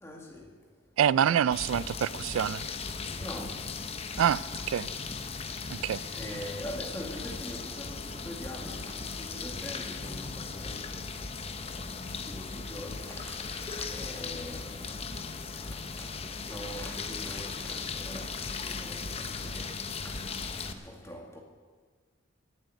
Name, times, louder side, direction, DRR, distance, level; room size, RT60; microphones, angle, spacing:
voice 1, 0.0-0.5 3.2-3.6 6.1-11.1 12.1-15.1 15.7-16.1 16.4-19.6 20.0-21.4, equal, 15° left, 2.0 m, -43 dB
voice 2, 1.0-2.6 4.2-4.4 4.7-4.9 5.7-6.0, right 9 dB, 80° right, 0.3 m, -26 dB
sound 1, 1.5-20.7, left 4 dB, 30° left, 0.7 m, -37 dB
15.5 x 7.9 x 9.0 m
head